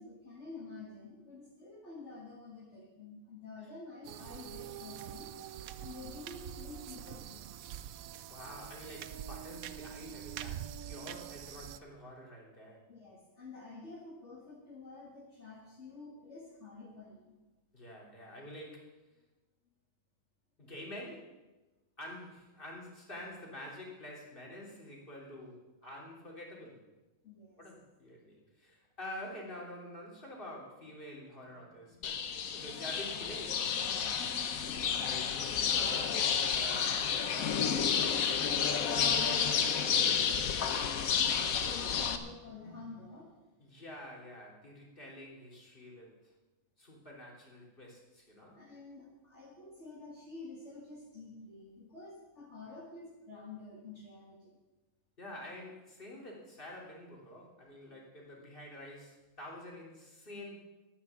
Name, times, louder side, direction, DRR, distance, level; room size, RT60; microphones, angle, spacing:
voice 1, 0.0-5.3 5.8-7.5 12.9-17.3 27.2-27.6 31.9-32.5 34.4-35.4 40.4-43.3 48.5-54.6, left 3 dB, 55° left, -4 dB, 2.3 m, -49 dB
sound 1, 4.0-11.8, right 10 dB, 85° right, 1.1 m, -45 dB
voice 2, 8.3-12.8 17.7-19.0 20.6-21.4 22.0-26.8 27.6-34.1 35.6-39.2 39.6-40.1 43.6-46.3 46.8-48.6 55.2-60.6, left 1 dB, 40° left, -2 dB, 3.3 m, -48 dB
sound 2, 32.0-42.2, left 7 dB, 80° left, 1.3 m, -31 dB
12.0 x 9.5 x 7.3 m, 1.1 s
omnidirectional pair, 1.4 m